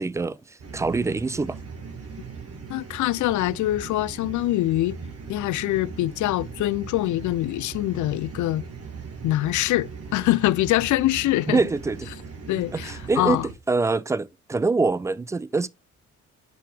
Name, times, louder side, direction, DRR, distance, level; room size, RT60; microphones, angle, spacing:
voice 1, 0.0-1.6 11.5-12.1 12.5-15.7, right 3 dB, 10° right, 0.3 m, -25 dB
sound 1, 0.6-13.5, right 5 dB, 50° right, 2.2 m, -39 dB
voice 2, 2.7-5.0 5.3-8.6 9.2-11.6 12.5-13.5, left 16 dB, 75° left, 0.5 m, -24 dB
7.9 x 5.6 x 3.4 m
cardioid pair, 90°, 30 cm